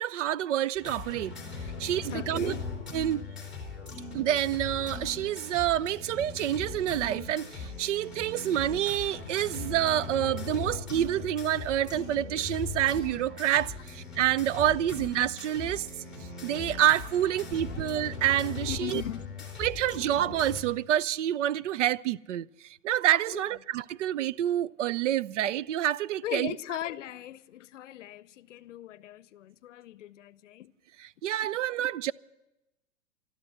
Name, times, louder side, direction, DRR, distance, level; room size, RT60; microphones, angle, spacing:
voice 1, 0.0-1.4 1.8-2.6 2.9-3.2 4.1-15.9 16.4-19.0 19.6-22.5 22.8-26.5 31.2-32.1, right 12 dB, 70° right, 0.5 m, -28 dB
sound 1, 0.7-20.6, left 4 dB, ahead, 2.7 m, -39 dB
voice 2, 2.1-2.6 14.8-14.9 18.7-19.5 23.3-23.4 26.2-30.7, left 13 dB, 75° left, 0.7 m, -39 dB
13.0 x 12.5 x 7.8 m
supercardioid pair, 175°, 38 cm